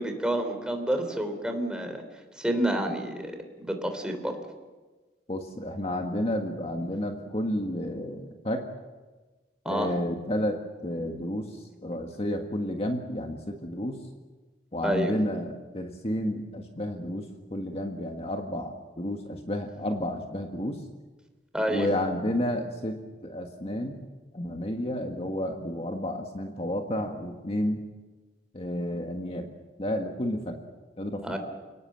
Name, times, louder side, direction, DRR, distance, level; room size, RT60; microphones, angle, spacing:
voice 1, 0.0-2.0 2.4-3.3 3.6-4.4 9.7-9.9 14.8-15.1 21.5-21.9 31.2-31.4, right 1 dB, 5° right, 5 dB, 3.4 m, -28 dB
voice 2, 5.3-8.7 9.7-11.5 11.8-14.0 14.7-20.8 21.7-24.0 24.3-27.8 28.5-29.5 29.8-30.6 31.0-31.4, left 1 dB, 35° left, 3 dB, 1.7 m, -31 dB
29.0 x 18.5 x 7.6 m, 1.3 s
head